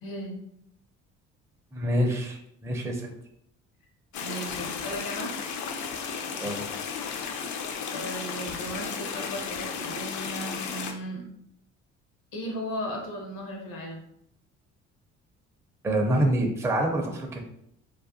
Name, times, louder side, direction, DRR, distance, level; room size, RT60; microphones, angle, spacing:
voice 1, 0.0-0.4 4.2-5.3 7.9-11.2 12.3-14.0, equal, 75° left, 1 dB, 0.9 m, -36 dB
voice 2, 1.7-3.1 6.4-6.6 15.8-17.4, right 1 dB, 10° right, 2 dB, 0.4 m, -26 dB
sound 1, 4.1-10.9, left 6 dB, 60° left, 0.5 m, -34 dB
2.4 x 2.2 x 2.5 m, 0.72 s
hypercardioid pair, 60°, 34 cm